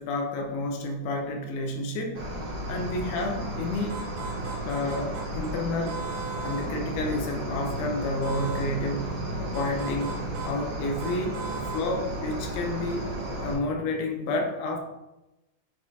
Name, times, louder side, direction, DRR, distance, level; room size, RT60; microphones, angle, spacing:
voice 1, 0.0-2.2 2.7-4.1 4.7-6.0 6.4-11.4 11.7-13.1 13.4-14.8, left 2 dB, 80° left, 2 dB, 2.2 m, -30 dB
Cricket, 2.1-13.5, right 1 dB, 45° right, 2.1 m, -34 dB
sound 1, 3.9-5.5 5.9-6.7 8.2-8.7 9.5-10.6 11.0-11.9, right 4 dB, 80° right, 2.6 m, -38 dB
6.2 x 3.7 x 4.2 m, 0.97 s
omnidirectional pair, 3.6 m